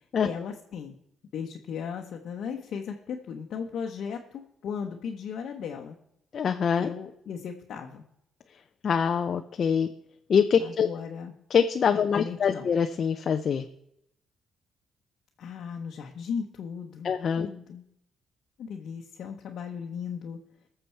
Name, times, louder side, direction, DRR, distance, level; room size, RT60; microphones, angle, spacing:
voice 1, 0.2-1.0 1.3-5.9 6.8-8.0 10.6-11.3 11.9-12.7 15.4-17.8 18.6-20.4, left 6 dB, 70° left, 0 dB, 1.0 m, -36 dB
voice 2, 6.3-6.9 8.8-9.9 10.3-10.9 11.5-13.7 17.0-17.5, left 7 dB, 55° left, 7 dB, 0.6 m, -24 dB
18.5 x 6.9 x 4.5 m, 0.77 s
cardioid pair, 90°, 0 cm